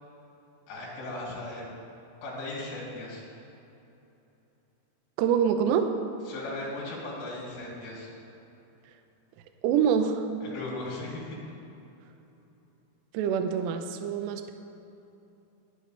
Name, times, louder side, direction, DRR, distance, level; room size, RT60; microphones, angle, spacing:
voice 1, 0.7-1.7 2.2-3.2 6.3-8.1 10.4-11.4, left 2 dB, 60° left, -6 dB, 5.0 m, -37 dB
voice 2, 5.2-5.9 9.6-10.3 13.1-14.5, right 8 dB, 80° right, 7 dB, 2.6 m, -25 dB
23.5 x 7.9 x 3.3 m, 2.9 s
omnidirectional pair, 5.6 m